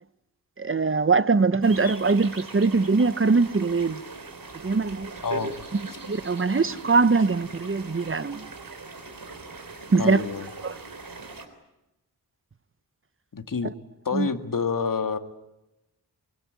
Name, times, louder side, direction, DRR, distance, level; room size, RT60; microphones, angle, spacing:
voice 1, 0.6-4.0 4.6-5.1 5.7-8.5 9.9-10.2 10.6-10.8 14.1-14.3, right 4 dB, 35° right, 0.8 m, -22 dB
sound 1, 1.6-11.5, right 3 dB, 60° right, 3.8 m, -40 dB
voice 2, 5.2-5.5 9.9-10.5 13.3-13.7 14.1-15.2, left 5 dB, 60° left, 2.0 m, -28 dB
24.0 x 22.5 x 9.5 m
wide cardioid pair, 100°, 38 cm